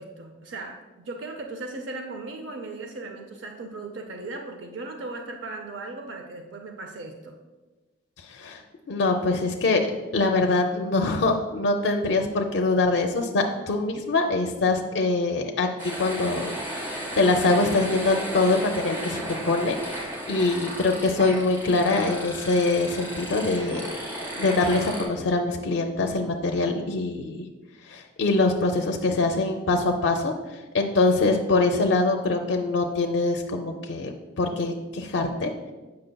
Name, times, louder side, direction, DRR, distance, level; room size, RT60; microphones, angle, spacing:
voice 1, 0.0-7.4, right 2 dB, 70° right, 3 dB, 0.5 m, -37 dB
voice 2, 8.3-8.6 8.9-9.8 10.1-15.7 16.0-16.5 16.8-23.9 24.4-27.4 27.8-30.3 30.7-35.5, left 3 dB, 65° left, 3 dB, 0.4 m, -24 dB
sound 1, 15.8-25.0, equal, 15° right, 1.3 m, -34 dB
7.7 x 5.6 x 2.2 m, 1.2 s
head